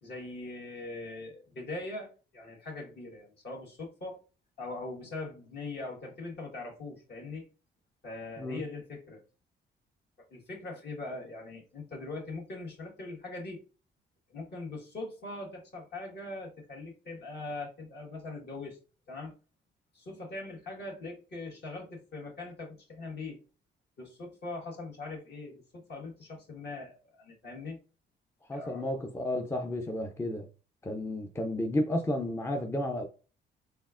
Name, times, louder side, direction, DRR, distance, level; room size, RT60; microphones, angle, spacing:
voice 1, 0.0-4.2 4.6-7.4 8.0-9.2 10.3-13.6 14.3-18.8 19.1-19.3 19.9-23.4 24.0-27.8 28.5-28.9, left 2 dB, 55° left, 1.5 m, -41 dB
voice 2, 28.5-30.5 30.8-33.0, left 1 dB, 15° left, 0.4 m, -32 dB
4.2 x 3.4 x 2.4 m
cardioid pair, 90°, 20 cm